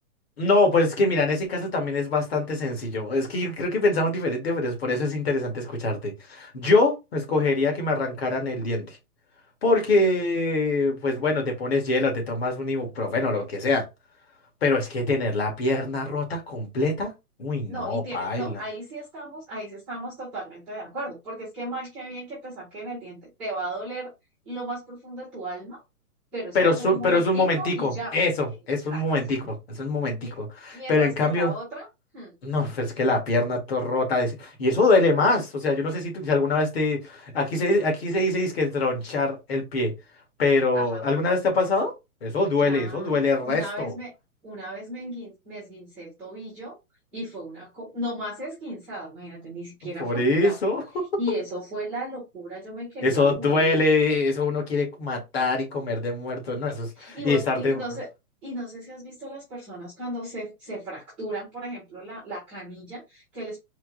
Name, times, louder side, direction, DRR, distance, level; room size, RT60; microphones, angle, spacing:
voice 1, 0.4-9.0 9.6-13.8 14.6-17.1 17.4-18.6 26.5-31.5 32.4-39.9 40.4-41.9 42.2-43.9 50.0-50.8 53.0-57.8, left 2 dB, 40° left, 2.0 m, -24 dB
voice 2, 17.7-24.1 24.4-25.8 26.3-28.2 28.5-28.6 28.9-29.0 30.2-30.4 30.7-31.9 32.1-32.3 40.7-41.0 42.6-44.1 44.4-46.8 47.1-50.6 51.2-53.8 57.0-58.1 58.4-63.6, right 1 dB, 5° right, 0.8 m, -35 dB
4.4 x 2.9 x 3.8 m
hypercardioid pair, 175°, 45 cm